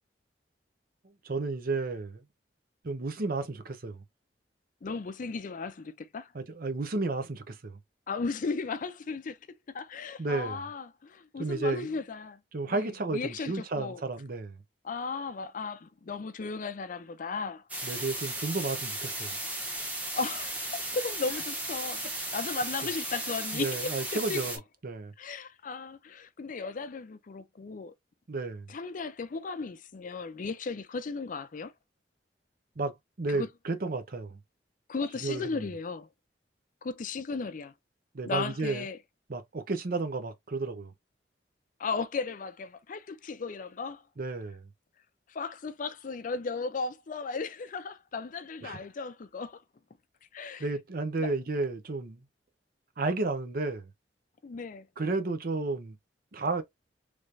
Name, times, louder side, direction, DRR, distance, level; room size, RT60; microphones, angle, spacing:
voice 1, 1.2-2.2 2.8-4.0 6.3-7.8 10.2-10.6 11.4-11.9 12.5-14.5 17.8-19.4 23.5-24.6 24.8-25.1 28.3-28.7 32.8-34.4 35.2-35.7 38.1-38.8 39.3-40.9 44.2-44.7 48.6-48.8 50.6-52.2 53.0-53.9 55.0-56.0 56.3-56.6, right 3 dB, 55° right, 0.7 m, -32 dB
voice 2, 4.8-6.3 8.1-9.4 9.7-12.4 12.7-14.0 14.8-17.6 20.1-24.4 25.2-27.9 28.7-31.7 33.3-33.5 34.9-36.1 36.8-37.7 38.3-39.0 41.8-44.0 45.3-49.6 50.3-50.7 51.2-51.3 54.4-54.9, left 4 dB, 50° left, 0.4 m, -36 dB
sound 1, 17.7-24.6, right 1 dB, 10° right, 1.1 m, -35 dB
3.3 x 3.2 x 2.5 m
head